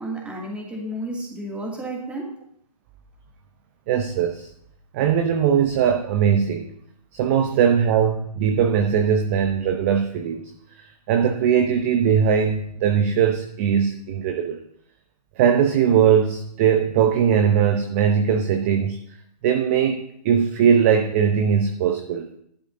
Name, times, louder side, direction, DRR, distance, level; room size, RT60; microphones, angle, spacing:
voice 1, 0.0-2.3, right 1 dB, 5° right, -2 dB, 2.3 m, -31 dB
voice 2, 3.9-4.5 4.9-6.7 7.1-10.4 10.8-14.6 15.4-19.0 19.4-22.3, right 7 dB, 20° right, 5 dB, 0.7 m, -20 dB
14.5 x 11.5 x 2.7 m, 0.69 s
figure-of-eight pair, 140°, 21 cm